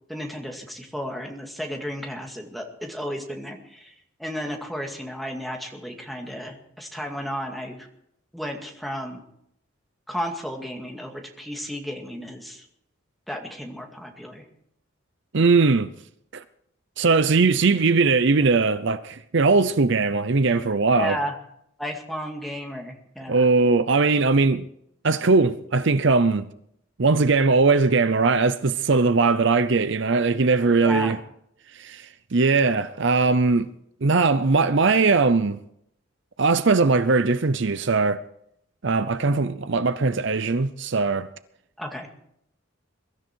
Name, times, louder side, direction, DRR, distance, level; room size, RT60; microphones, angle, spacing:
voice 1, 0.1-3.9 4.2-7.9 8.3-9.2 10.1-12.7 13.3-14.4 20.9-21.3 21.8-23.5 30.8-31.1 41.8-42.1, equal, ahead, 2.2 m, -33 dB
voice 2, 15.3-15.9 16.3-16.4 17.0-21.2 23.3-24.7 25.0-26.5 27.0-31.2 31.7-33.7 34.0-35.6 36.4-38.2 38.8-41.3, right 4 dB, 55° right, 0.6 m, -20 dB
22.5 x 13.5 x 4.6 m
head